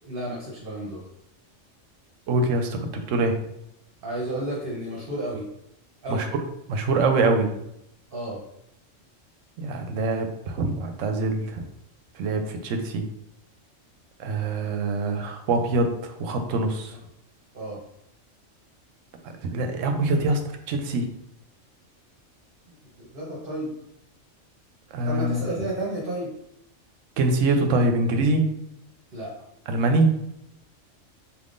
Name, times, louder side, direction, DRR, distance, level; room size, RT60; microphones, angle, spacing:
voice 1, 0.0-1.0 4.0-5.5 6.0-6.3 8.1-8.4 17.5-17.8 23.0-23.7 25.0-26.3 29.1-29.3, right 1 dB, 45° right, -4 dB, 1.0 m, -32 dB
voice 2, 2.3-3.3 6.1-6.3 6.7-7.5 9.6-11.7 12.1-13.0 14.2-16.9 19.5-20.4 20.7-21.1 24.9-25.5 27.2-28.5 29.7-30.1, right 2 dB, 80° right, 6 dB, 0.9 m, -24 dB
4.6 x 3.5 x 2.5 m, 0.80 s
omnidirectional pair, 1.3 m